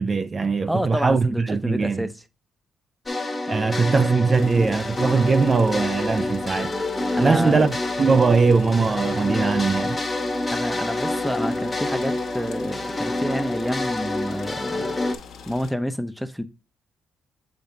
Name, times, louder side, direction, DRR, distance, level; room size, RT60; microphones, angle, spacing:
voice 1, 0.0-2.1 3.5-6.7 7.2-7.7 8.0-10.0, right 4 dB, 35° right, 0.6 m, -20 dB
voice 2, 0.7-2.1 7.1-7.7 10.5-14.9 15.5-16.4, equal, ahead, 0.8 m, -28 dB
sound 1, 3.1-15.2, left 2 dB, 20° left, 1.1 m, -27 dB
sound 2, 4.3-15.7, left 6 dB, 70° left, 1.1 m, -43 dB
7.6 x 5.2 x 2.7 m
cardioid pair, 90°, 0 cm